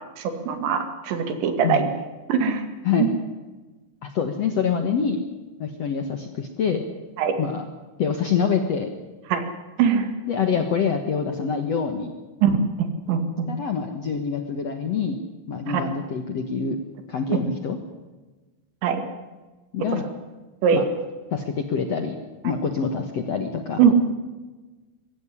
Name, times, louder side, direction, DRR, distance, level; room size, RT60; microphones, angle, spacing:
voice 1, 0.2-1.8 2.3-2.6 7.2-7.3 9.3-9.4 9.8-10.1 12.4-12.6 13.1-13.5 15.7-15.8 18.8-19.0 20.6-20.8 23.8-24.0, right 7 dB, 90° right, 8 dB, 4.5 m, -21 dB
voice 2, 4.0-5.2 5.6-6.8 7.4-7.6 8.0-8.9 10.2-12.1 13.5-15.2 15.5-16.8 17.1-17.8 19.7-20.0 20.7-20.8 21.3-22.1 22.4-23.8, left 6 dB, 65° left, 6 dB, 1.7 m, -25 dB
23.0 x 16.0 x 10.0 m, 1.2 s
omnidirectional pair, 5.0 m